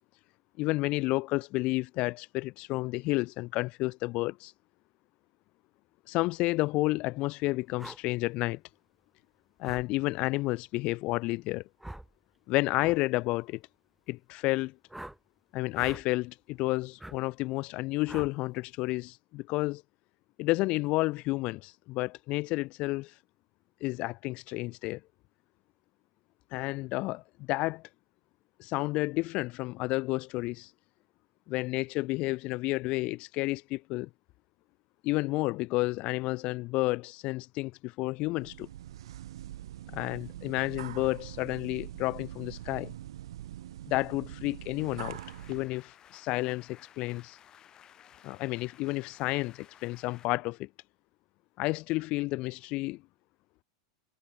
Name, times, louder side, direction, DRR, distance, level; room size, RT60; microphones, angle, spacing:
voice 1, 0.6-4.5 6.1-8.6 9.6-11.6 12.5-13.6 14.1-14.7 15.5-19.8 20.4-23.1 23.8-25.0 26.5-27.8 28.6-30.7 31.5-34.1 35.0-38.7 39.9-42.9 43.9-45.2 45.5-47.4 48.2-50.7 51.6-53.0, left 21 dB, 45° left, 1.4 m, -31 dB
sound 1, 7.8-8.0 9.6-9.9 11.8-12.1 12.8-13.0 14.9-15.2 15.7-16.0 17.0-17.2 18.1-18.3, right 1 dB, 5° right, 2.7 m, -43 dB
sound 2, 38.4-45.7, right 13 dB, 80° right, 2.4 m, -44 dB
sound 3, 44.8-50.3, left 10 dB, 25° left, 7.1 m, -57 dB
supercardioid pair, 135°, 3 cm